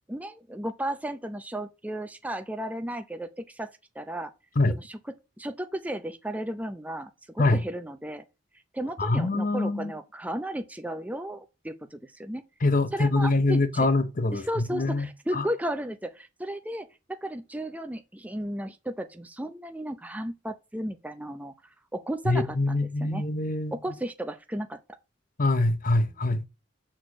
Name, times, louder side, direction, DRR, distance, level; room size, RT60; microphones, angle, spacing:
voice 1, 0.1-3.7 4.0-4.3 4.7-5.0 5.4-8.2 8.7-12.4 12.9-13.9 14.3-21.5 21.9-23.2 23.7-24.8, right 1 dB, 10° right, 0.6 m, -34 dB
voice 2, 9.0-9.9 12.6-15.1 15.3-15.5 22.3-23.8 25.4-26.5, left 2 dB, 50° left, 0.9 m, -24 dB
6.4 x 4.4 x 6.1 m
head